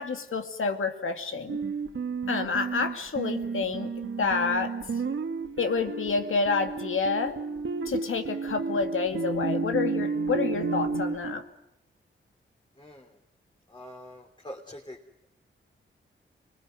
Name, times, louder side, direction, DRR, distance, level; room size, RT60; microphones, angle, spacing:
voice 1, 0.0-1.6 2.3-4.8 5.6-7.4 7.9-11.4, left 4 dB, 80° left, 6 dB, 2.3 m, -29 dB
sound 1, 1.5-11.3, right 4 dB, 65° right, 1.8 m, -32 dB
sound 2, 7.5-7.6 8.4-11.0, left 5 dB, 50° left, 2.0 m, -39 dB
voice 2, 12.8-13.1 13.7-15.0, equal, 20° left, 0 dB, 3.4 m, -44 dB
26.0 x 20.5 x 9.5 m, 0.82 s
cardioid pair, 70°, 21 cm